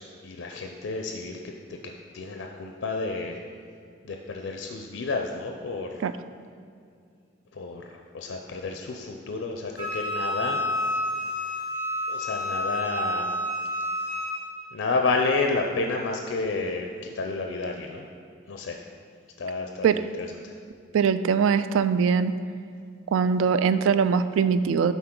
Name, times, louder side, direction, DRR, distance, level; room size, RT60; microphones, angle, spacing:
voice 1, 0.0-1.5 2.1-3.4 4.0-5.9 7.5-7.9 8.1-10.6 12.1-13.3 14.7-18.1 18.5-18.8 19.4-20.5, left 3 dB, 80° left, 3 dB, 0.4 m, -30 dB
Wind instrument woodwind instrument, 9.8-14.4, left 1 dB, 25° right, 1.7 m, -29 dB
voice 2, 20.9-22.3 23.1-24.9, right 6 dB, 85° right, 13 dB, 0.3 m, -22 dB
10.5 x 4.0 x 3.7 m, 2.3 s
head